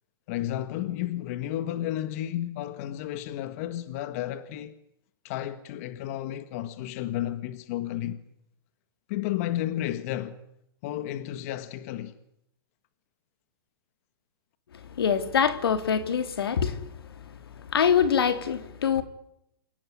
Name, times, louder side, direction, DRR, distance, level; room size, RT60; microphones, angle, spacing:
voice 1, 0.3-4.8 5.2-8.2 9.1-10.4 10.8-12.2, left 13 dB, 40° left, 1.7 m, -32 dB
voice 2, 15.0-16.8 17.7-19.0, left 7 dB, 80° left, 3.6 m, -24 dB
28.5 x 18.0 x 9.7 m
hypercardioid pair, 155°, 12 cm